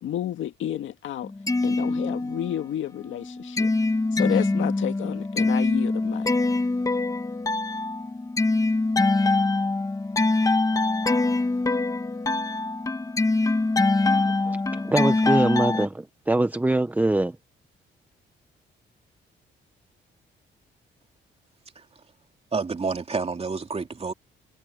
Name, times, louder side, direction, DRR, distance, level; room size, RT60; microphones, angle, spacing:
voice 1, 0.0-1.3 1.6-3.7 4.1-6.3, left 11 dB, 75° left, 2.0 m, -30 dB
sound 1, 1.2-2.7 3.0-15.9, left 2 dB, 15° left, 1.2 m, -24 dB
voice 2, 14.4-17.4, right 2 dB, 10° right, 0.8 m, -23 dB
voice 3, 22.5-24.1, right 4 dB, 30° right, 3.0 m, -29 dB
cardioid pair, 90°, 20 cm